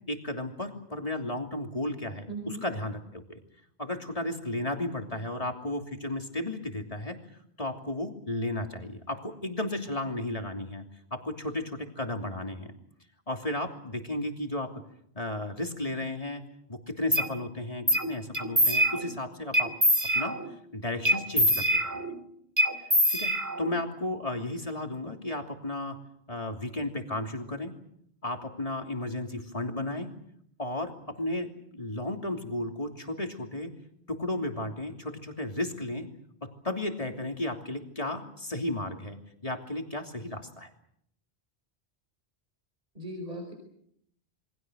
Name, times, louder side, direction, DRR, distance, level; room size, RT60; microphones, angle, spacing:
voice 1, 0.1-3.4 3.8-7.2 7.6-10.8 11.1-12.7 13.3-14.7 15.1-16.4 16.7-19.7 20.1-20.4 20.7-22.1 23.1-23.3 23.6-26.0 26.3-27.7 28.2-30.1 30.6-33.7 34.1-36.1 36.4-40.7, left 1 dB, 35° left, 3 dB, 3.2 m, -34 dB
voice 2, 2.3-2.6 42.9-43.5, right 1 dB, 40° right, 3 dB, 5.0 m, -37 dB
sound 1, 17.1-17.3 17.9-18.1 18.3-19.2 19.5-20.5 21.0-22.2 22.6-23.8, equal, 15° right, 2.6 m, -24 dB
28.5 x 24.0 x 6.4 m, 0.71 s
omnidirectional pair, 1.1 m